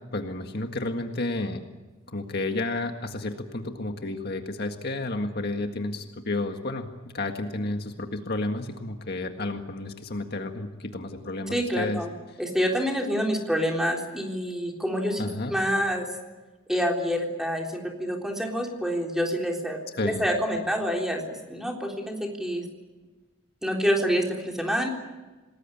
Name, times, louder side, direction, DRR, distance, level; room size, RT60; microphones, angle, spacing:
voice 1, 0.1-1.6 2.1-6.9 7.1-12.0 15.2-15.5 20.0-20.3, left 2 dB, 50° left, 5 dB, 1.8 m, -31 dB
voice 2, 11.5-12.1 12.4-16.1 16.7-22.6 23.6-24.9, equal, ahead, 1 dB, 3.8 m, -27 dB
28.0 x 20.0 x 8.5 m, 1.2 s
head